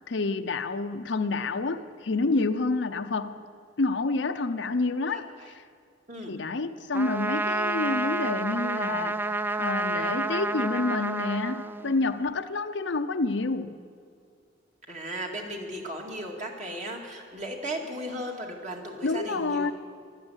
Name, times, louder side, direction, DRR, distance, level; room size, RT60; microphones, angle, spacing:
voice 1, 0.1-3.4 3.8-5.3 6.3-9.3 9.6-13.8 19.0-19.7, left 3 dB, 75° left, 0.7 m, -28 dB
voice 2, 5.1-5.5 6.1-6.4 14.9-19.7, equal, 40° right, 2.2 m, -36 dB
Trumpet, 6.9-12.2, right 2 dB, 10° right, 0.3 m, -29 dB
14.5 x 12.5 x 8.1 m
head